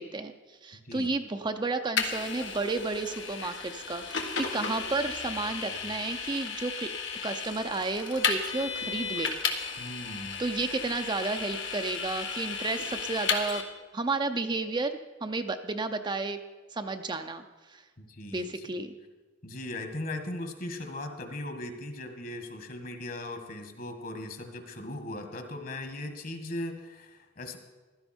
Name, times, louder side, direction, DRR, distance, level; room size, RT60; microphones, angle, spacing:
voice 1, 0.0-6.9 7.2-9.3 10.4-13.6 13.9-16.4 16.7-17.8 18.3-19.0, right 3 dB, 25° right, 7 dB, 0.5 m, -32 dB
Vehicle, 2.0-13.6, left 5 dB, 90° left, 1.6 m, -34 dB
voice 2, 9.8-10.4 18.0-18.6 19.4-27.6, left 1 dB, 50° left, 6 dB, 1.6 m, -38 dB
15.5 x 13.0 x 4.4 m, 1.3 s
head